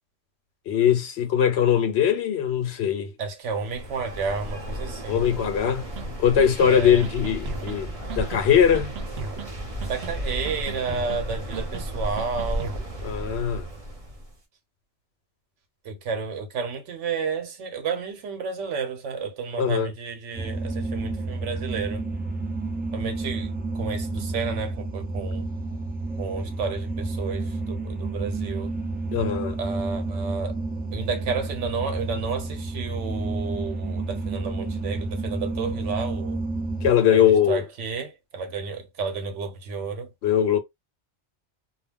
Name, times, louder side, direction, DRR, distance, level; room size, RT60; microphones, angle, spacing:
voice 1, 0.7-3.1 5.1-5.8 6.2-8.9 13.0-13.7 19.6-19.9 29.1-29.6 36.8-37.6 40.2-40.6, left 8 dB, 65° left, 0.8 m, -21 dB
voice 2, 3.2-5.3 6.7-7.0 9.9-12.8 15.8-22.0 22.9-25.5 26.2-28.7 29.6-30.6 30.9-36.4 37.1-40.1, right 5 dB, 85° right, 1.1 m, -31 dB
sound 1, 3.5-14.3, equal, 35° right, 0.9 m, -34 dB
sound 2, 6.0-6.1 6.4-6.7 7.0-7.8 8.1-8.4 8.7-9.5 9.8-10.2 10.5-11.2 11.5-11.9 12.2-12.8, right 5 dB, 65° right, 0.7 m, -37 dB
sound 3, 20.3-36.9, right 3 dB, 15° right, 0.3 m, -30 dB
2.3 x 2.2 x 3.4 m
omnidirectional pair, 1.2 m